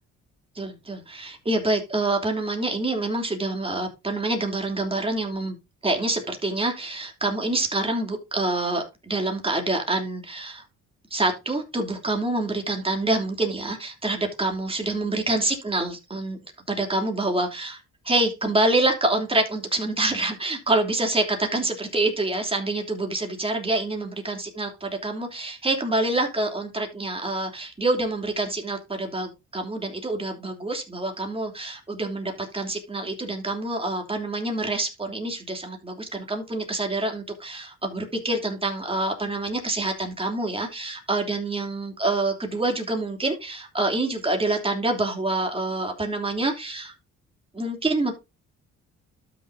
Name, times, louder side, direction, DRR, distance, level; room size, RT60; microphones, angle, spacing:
voice 1, 0.5-5.6 5.8-10.6 11.1-16.4 16.7-46.9 47.5-48.1, right 2 dB, 20° right, 3.0 m, -26 dB
12.5 x 6.3 x 2.7 m
cardioid pair, 90°, 30 cm